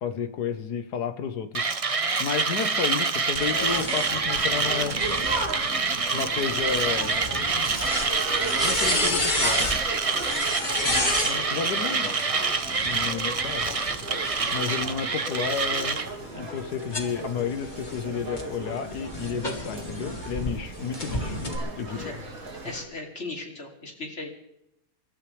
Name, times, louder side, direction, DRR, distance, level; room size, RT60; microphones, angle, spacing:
voice 1, 0.0-5.0 6.1-7.2 8.6-9.7 10.9-12.2 12.8-13.8 14.5-16.0 16.3-21.4 21.7-22.2, left 6 dB, 80° left, 8 dB, 1.7 m, -32 dB
Mechanisms, 1.5-16.1, right 4 dB, 35° right, 0.6 m, -27 dB
sound 1, 3.4-11.4 12.5-14.9 15.4-20.5 20.9-21.6, left 1 dB, 30° left, 2.3 m, -32 dB
sound 2, 3.5-22.8, right 2 dB, 60° right, 3.1 m, -37 dB
voice 2, 8.8-9.7 22.0-22.2 22.6-24.3, left 3 dB, 45° left, 1 dB, 3.2 m, -36 dB
28.5 x 13.5 x 3.4 m, 0.80 s
omnidirectional pair, 1.7 m